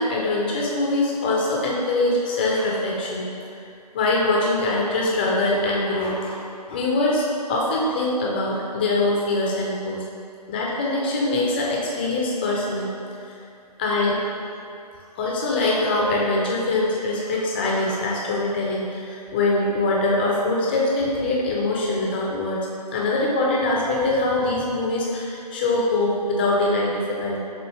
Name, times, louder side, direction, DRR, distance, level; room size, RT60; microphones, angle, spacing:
voice 1, 0.0-3.3 3.9-10.0 10.5-12.9 13.8-14.2 15.2-22.7 22.9-27.4, left 2 dB, 15° left, -3 dB, 0.4 m, -23 dB
6.3 x 2.6 x 3.1 m, 2.6 s
figure-of-eight pair, 150°, 21 cm